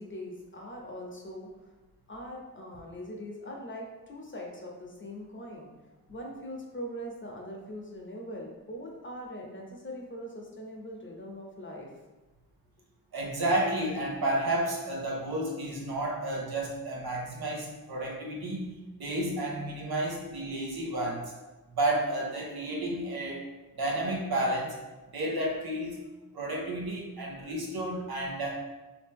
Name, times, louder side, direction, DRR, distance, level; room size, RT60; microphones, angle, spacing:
voice 1, 0.0-1.5 2.1-5.7 6.1-11.9, equal, 35° left, -1 dB, 0.8 m, -41 dB
voice 2, 13.1-21.3 21.7-23.4 23.8-24.8 25.1-26.0 26.3-28.6, right 1 dB, 80° right, -2 dB, 0.8 m, -31 dB
2.9 x 2.8 x 3.5 m, 1.2 s
cardioid pair, 50°, 36 cm